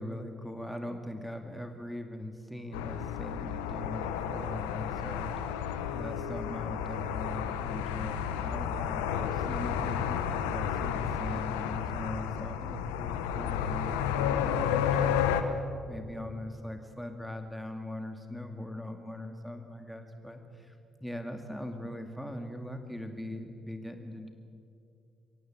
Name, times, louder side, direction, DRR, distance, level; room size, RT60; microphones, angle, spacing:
voice 1, 0.0-15.6 15.9-24.3, left 1 dB, 5° left, 5 dB, 2.2 m, -41 dB
sound 1, 2.7-15.4, left 8 dB, 85° left, 1.0 m, -32 dB
23.0 x 17.5 x 7.6 m, 2.5 s
hypercardioid pair, 50°, 0 cm